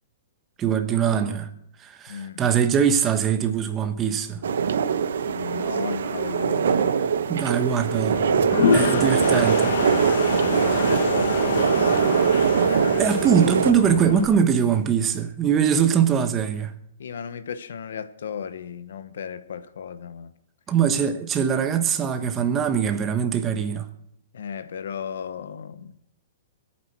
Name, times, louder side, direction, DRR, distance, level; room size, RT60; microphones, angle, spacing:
voice 1, 0.6-1.5 1.8-4.4 7.3-8.2 8.5-9.8 12.8-16.7 20.7-23.9, right 7 dB, 15° right, 1.1 m, -22 dB
voice 2, 2.1-2.4 5.2-7.0 10.3-11.9 17.0-20.3 24.3-25.9, left 7 dB, 80° left, 1.0 m, -35 dB
sound 1, 4.4-13.7, right 7 dB, 80° right, 1.0 m, -22 dB
Toilet flush, 8.1-14.3, left 5 dB, 60° left, 1.6 m, -27 dB
25.0 x 8.8 x 4.5 m
hypercardioid pair, 170°, 0 cm